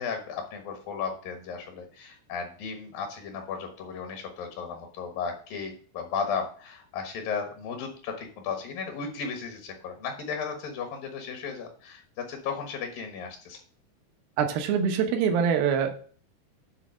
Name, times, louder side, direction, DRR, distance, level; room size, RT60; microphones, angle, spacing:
voice 1, 0.0-13.6, left 6 dB, 70° left, 4 dB, 2.9 m, -35 dB
voice 2, 14.4-15.9, right 7 dB, 80° right, 5 dB, 2.9 m, -24 dB
9.8 x 4.0 x 6.2 m, 0.43 s
omnidirectional pair, 4.2 m